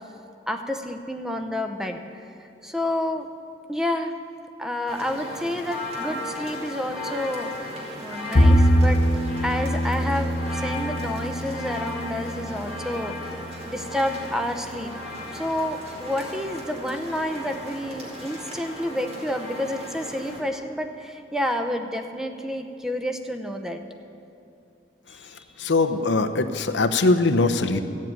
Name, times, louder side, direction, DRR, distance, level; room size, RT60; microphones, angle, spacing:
voice 1, 0.5-2.0 2.6-3.3 3.7-4.1 4.6-7.7 8.0-9.0 9.4-13.4 13.7-14.9 15.3-23.8 25.1-25.7, left 1 dB, 5° right, 5 dB, 0.7 m, -29 dB
sound 1, 4.9-20.4, left 1 dB, 35° right, 3.5 m, -36 dB
Bowed string instrument, 8.3-14.7, equal, 45° left, 0.8 m, -23 dB
voice 2, 25.6-27.8, left 3 dB, 90° left, 8 dB, 0.7 m, -21 dB
15.0 x 7.5 x 8.9 m, 2.7 s
head